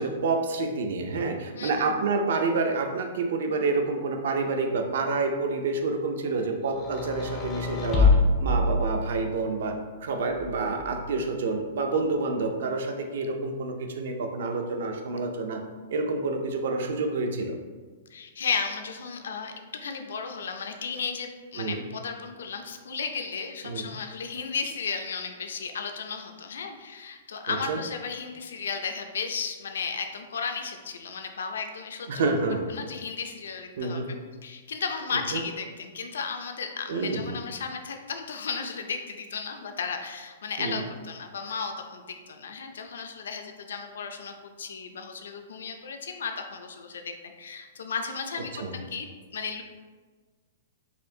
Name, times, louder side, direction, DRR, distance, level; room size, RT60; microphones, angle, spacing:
voice 1, 0.0-8.1 8.4-9.7 10.0-15.6 15.9-17.5 21.6-21.8 23.6-23.9 27.5-27.8 32.1-32.7 33.8-34.1 35.3-35.4 36.9-37.2 40.6-40.8 48.5-48.7, right 3 dB, 60° right, 5 dB, 0.5 m, -28 dB
voice 2, 1.5-1.9 18.1-19.5 19.8-32.2 32.7-34.2 34.4-49.1 49.3-49.6, left 5 dB, 80° left, 5 dB, 0.4 m, -34 dB
sound 1, 6.7-9.5 10.4-11.3, left 3 dB, 15° left, 0.3 m, -25 dB
4.2 x 2.5 x 2.7 m, 1.4 s
hypercardioid pair, 170°, 0 cm